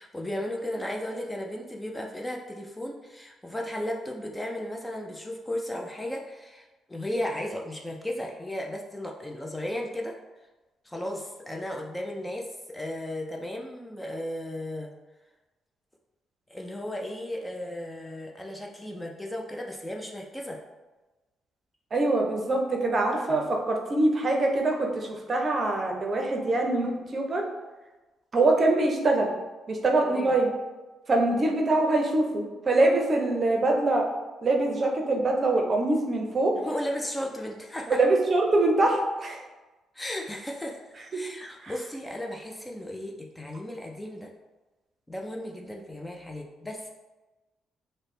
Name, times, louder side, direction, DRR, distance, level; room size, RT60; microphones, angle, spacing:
voice 1, 0.0-10.1 10.8-14.9 16.5-20.6 30.0-30.3 36.6-38.0 39.9-44.3 45.1-46.9, left 1 dB, 10° left, 0 dB, 0.4 m, -35 dB
voice 2, 21.9-27.4 28.3-29.3 29.7-30.5 31.1-34.1 34.4-36.6 37.9-39.5 41.1-41.2 41.6-41.7, right 2 dB, 40° right, 2 dB, 0.6 m, -24 dB
3.1 x 2.1 x 4.1 m, 1.1 s
cardioid pair, 90°, 0 cm